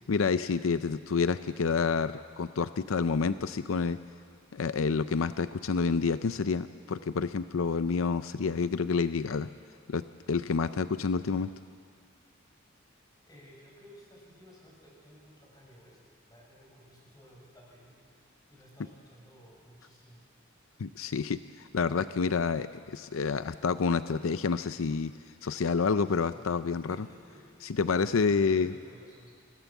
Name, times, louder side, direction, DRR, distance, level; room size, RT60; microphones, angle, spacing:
voice 1, 0.1-4.0 4.5-9.5 9.9-11.5 20.8-25.1 25.4-27.1 27.8-28.7, left 5 dB, 85° left, 12 dB, 0.5 m, -28 dB
voice 2, 13.2-16.0 16.3-20.2 26.1-26.5 26.8-27.5 27.8-29.3, equal, 20° left, -3 dB, 6.4 m, -55 dB
26.5 x 17.0 x 7.2 m, 2.2 s
head